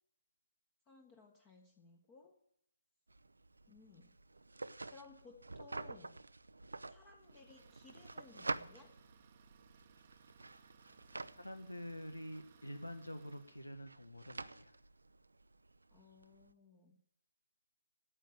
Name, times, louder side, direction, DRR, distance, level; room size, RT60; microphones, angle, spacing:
voice 1, 0.9-2.3 3.7-4.1 4.8-6.2 6.9-9.0 15.9-17.0, left 4 dB, 20° left, 2 dB, 1.4 m, -60 dB
sound 1, 3.1-16.5, right 2 dB, 75° right, 0.6 m, -49 dB
Idling, 7.2-13.7, right 8 dB, 35° right, 0.9 m, -66 dB
voice 2, 11.4-14.7, equal, 90° left, 8 dB, 1.4 m, -47 dB
10.5 x 9.0 x 8.7 m, 0.75 s
figure-of-eight pair, 140°, 0 cm